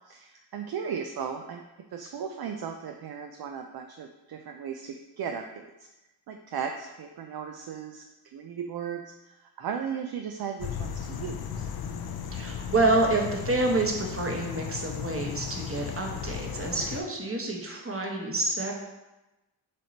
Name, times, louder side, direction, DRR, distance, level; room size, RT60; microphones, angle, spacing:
voice 1, 0.1-1.6 1.9-5.7 6.3-8.0 8.3-11.7, right 7 dB, 55° right, 4 dB, 0.5 m, -36 dB
sound 1, 10.6-17.0, left 7 dB, 55° left, 0.5 m, -36 dB
voice 2, 12.3-18.7, right 2 dB, 30° right, 1 dB, 1.1 m, -28 dB
6.2 x 2.9 x 2.8 m, 1.0 s
supercardioid pair, 45°, 47 cm